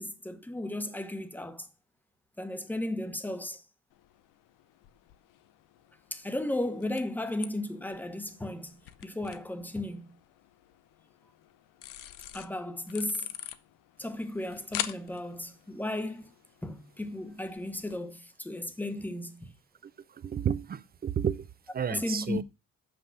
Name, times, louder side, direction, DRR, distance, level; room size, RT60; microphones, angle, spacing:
voice 1, 0.0-1.7 2.4-3.6 6.1-8.8 9.0-10.1 12.3-13.3 14.0-16.3 16.6-19.5 21.9-22.4, left 1 dB, 5° left, 0.9 m, -35 dB
sound 1, 3.9-18.0, left 13 dB, 90° left, 0.8 m, -45 dB
voice 2, 20.2-21.5 21.7-22.4, right 8 dB, 30° right, 0.4 m, -31 dB
6.9 x 6.1 x 5.8 m
cardioid pair, 125°, 32 cm